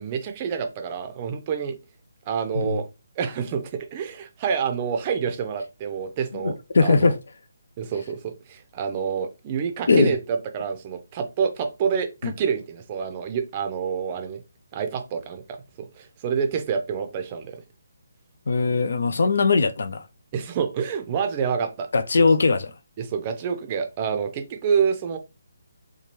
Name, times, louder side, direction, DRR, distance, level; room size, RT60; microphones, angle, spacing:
voice 1, 0.0-1.8 2.3-2.9 3.2-7.1 7.8-14.4 14.7-15.6 16.0-17.6 20.3-21.9 22.1-22.2 23.0-25.2, right 7 dB, 30° right, 0.5 m, -27 dB
voice 2, 6.3-7.2 9.9-10.1 12.2-12.3 18.5-20.1 21.9-22.7, left 4 dB, 65° left, 0.3 m, -20 dB
2.9 x 2.3 x 2.9 m
figure-of-eight pair, 150°, 0 cm